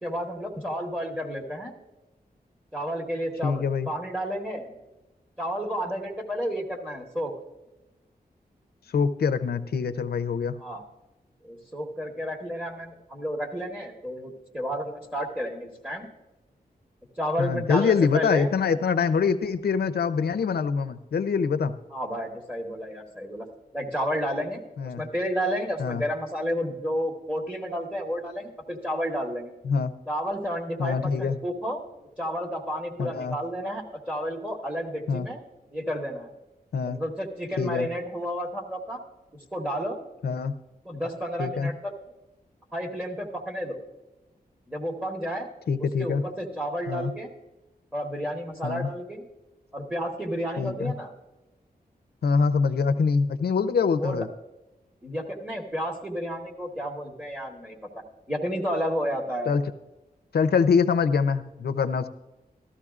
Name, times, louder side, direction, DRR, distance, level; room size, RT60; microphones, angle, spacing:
voice 1, 0.0-1.7 2.7-4.7 5.4-7.3 10.6-10.8 11.4-16.1 17.2-18.5 21.9-23.4 23.7-29.5 30.1-31.8 32.2-35.4 35.7-36.3 36.9-39.0 39.5-40.0 40.8-41.9 42.7-43.8 44.7-45.5 45.8-47.3 47.9-49.3 49.7-51.1 54.0-54.2 55.0-58.0 58.3-59.6, equal, 10° right, -1 dB, 1.3 m, -31 dB
voice 2, 3.4-3.9 8.9-10.6 17.4-21.8 24.8-25.0 25.8-26.0 29.6-29.9 30.8-31.4 33.0-33.4 35.1-35.3 36.7-37.0 37.6-37.9 40.2-40.5 41.4-41.7 45.7-46.2 46.9-47.1 48.6-48.9 50.6-50.9 52.2-54.3 59.5-59.6 60.3-62.1, left 5 dB, 85° left, 10 dB, 0.6 m, -24 dB
14.5 x 12.5 x 2.4 m, 1.0 s
wide cardioid pair, 130°, 16 cm